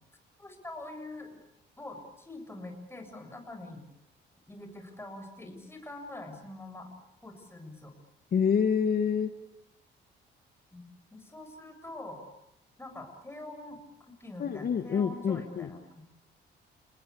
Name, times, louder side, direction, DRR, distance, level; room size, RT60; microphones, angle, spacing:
voice 1, 0.4-1.4 1.8-3.8 4.5-6.9 7.2-7.9 10.7-12.2 12.8-13.8 14.2-16.2, left 2 dB, 10° left, 5 dB, 7.7 m, -44 dB
voice 2, 8.3-9.3 14.4-15.7, left 7 dB, 50° left, 7 dB, 1.6 m, -27 dB
29.5 x 20.5 x 8.5 m, 0.82 s
cardioid pair, 90°, 20 cm